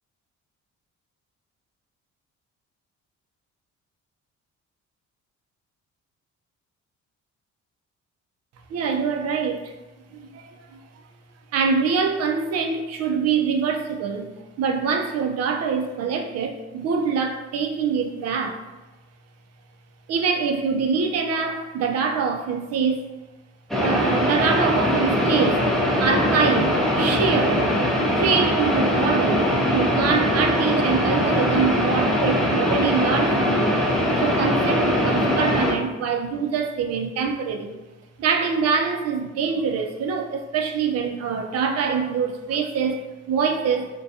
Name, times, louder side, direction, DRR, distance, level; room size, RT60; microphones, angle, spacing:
voice 1, 8.7-9.7 10.1-10.8 11.5-14.3 14.6-18.6 20.1-23.1 23.8-25.7 26.0-27.8 28.2-33.9 34.2-37.8 38.2-43.9, right 5 dB, 55° right, 4 dB, 0.4 m, -24 dB
sound 1, 23.7-35.7, equal, ahead, 0.5 m, -21 dB
2.5 x 2.2 x 2.6 m, 1.1 s
cardioid pair, 90°, 30 cm